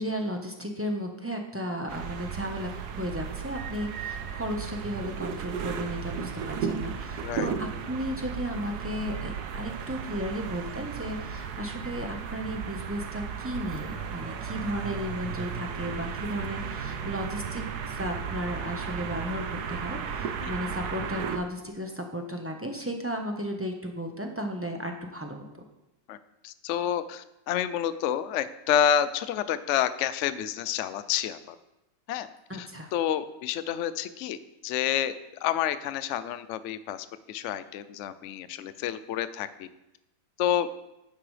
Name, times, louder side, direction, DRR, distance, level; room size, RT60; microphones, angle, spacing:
voice 1, 0.0-2.7 3.0-25.4 32.5-32.9, equal, 10° right, 2 dB, 0.7 m, -34 dB
sound 1, 1.9-21.4, right 7 dB, 65° right, 1.3 m, -35 dB
voice 2, 26.4-31.4 32.1-32.3 32.5-34.4 34.6-35.1 35.4-39.7 40.4-40.7, left 10 dB, 85° left, 13 dB, 0.6 m, -29 dB
11.5 x 9.9 x 3.3 m, 0.93 s
omnidirectional pair, 1.9 m